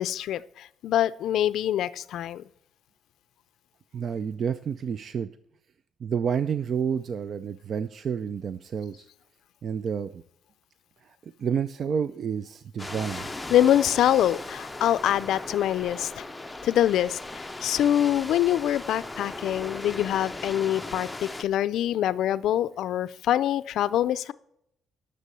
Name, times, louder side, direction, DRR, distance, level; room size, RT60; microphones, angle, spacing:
voice 1, 0.0-2.4 13.5-16.2 16.6-24.3, left 11 dB, 75° left, 15 dB, 0.4 m, -25 dB
voice 2, 3.9-5.3 6.0-9.1 9.6-10.2 11.0-13.3, right 7 dB, 45° right, 13 dB, 0.4 m, -30 dB
sound 1, 12.8-21.4, left 2 dB, 10° left, 0.6 m, -38 dB
11.5 x 6.6 x 6.8 m, 0.72 s
cardioid pair, 140°, 0 cm